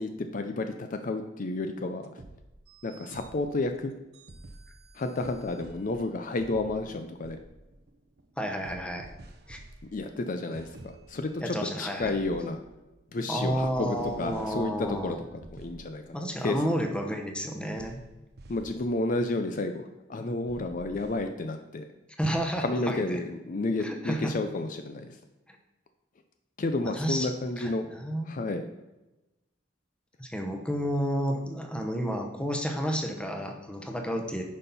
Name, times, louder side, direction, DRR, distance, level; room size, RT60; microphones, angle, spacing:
voice 1, 0.0-2.1 2.8-3.9 5.0-7.4 9.9-12.6 13.1-15.2 15.5-16.0 16.4-16.6 18.5-21.9 22.6-25.2 26.6-27.9 28.3-28.7, left 2 dB, 45° left, 7 dB, 0.5 m, -31 dB
sound 1, 2.0-13.1 13.5-16.2 17.7-19.2 20.5-21.2, right 2 dB, 55° right, 0.7 m, -50 dB
voice 2, 8.4-9.1 9.5-9.6 11.4-12.2 13.3-15.2 16.1-18.0 22.2-23.2 23.8-24.4 25.5-25.6 26.8-27.3 27.6-28.4 30.2-34.4, equal, 5° left, 3 dB, 0.9 m, -31 dB
9.8 x 5.5 x 4.1 m, 1.0 s
head